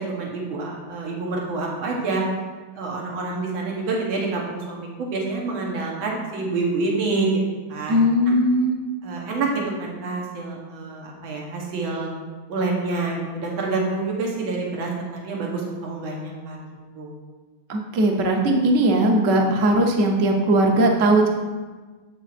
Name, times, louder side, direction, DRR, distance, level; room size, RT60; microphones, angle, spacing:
voice 1, 0.0-2.2 2.7-7.4 7.7-8.0 9.0-12.1 12.5-16.6 17.0-17.1, right 3 dB, 85° right, -2 dB, 1.9 m, -27 dB
voice 2, 7.9-8.8 17.7-21.3, right 1 dB, 55° right, 1 dB, 0.9 m, -19 dB
7.5 x 7.2 x 2.5 m, 1.3 s
omnidirectional pair, 2.2 m